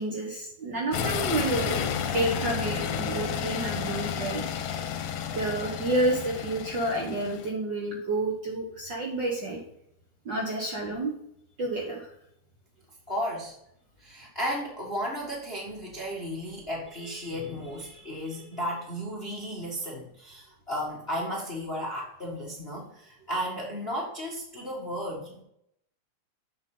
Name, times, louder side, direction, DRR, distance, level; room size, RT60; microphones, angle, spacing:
voice 1, 0.0-1.8 2.1-4.4 5.3-9.6 10.2-11.1 11.6-12.1, right 2 dB, 55° right, -1 dB, 1.4 m, -29 dB
sound 1, 0.9-7.5, left 8 dB, 75° left, 2.2 m, -31 dB
voice 2, 13.1-13.5 14.0-25.4, equal, 30° left, -3 dB, 1.1 m, -34 dB
7.4 x 7.2 x 3.8 m, 0.74 s
omnidirectional pair, 3.5 m